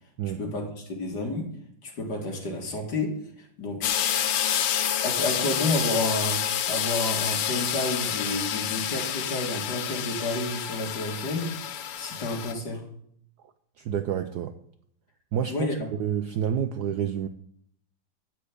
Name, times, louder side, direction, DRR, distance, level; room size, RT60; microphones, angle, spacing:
voice 1, 0.4-1.5 1.8-3.9 5.0-6.4 6.7-11.5 12.0-12.8 15.5-15.9, left 2 dB, 50° left, 2.4 m, -30 dB
sound 1, 3.8-12.5, left 9 dB, 90° left, 1.7 m, -28 dB
voice 2, 13.8-14.5 15.3-17.3, right 9 dB, 90° right, 0.8 m, -29 dB
12.5 x 4.6 x 8.4 m
omnidirectional pair, 2.4 m